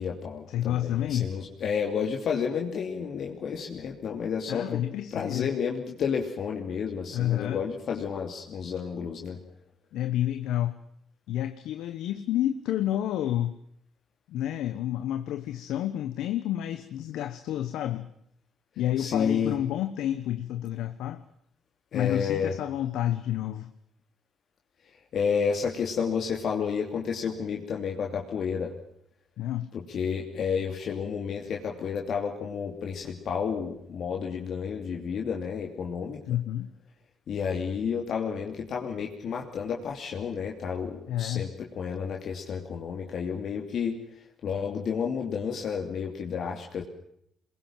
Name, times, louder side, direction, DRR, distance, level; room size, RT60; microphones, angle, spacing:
voice 1, 0.0-4.8 5.1-9.4 19.0-19.5 21.9-22.5 25.1-28.7 29.7-36.2 37.3-44.0 44.4-46.8, left 6 dB, 65° left, 1 dB, 2.8 m, -31 dB
voice 2, 0.5-1.3 4.5-5.5 7.1-7.6 9.9-10.8 11.3-13.6 14.3-18.1 18.8-21.2 21.9-23.7 29.4-29.7 36.3-36.7 41.1-41.5, left 12 dB, 80° left, 9 dB, 1.1 m, -29 dB
22.5 x 21.5 x 7.6 m, 0.71 s
supercardioid pair, 70°, 0 cm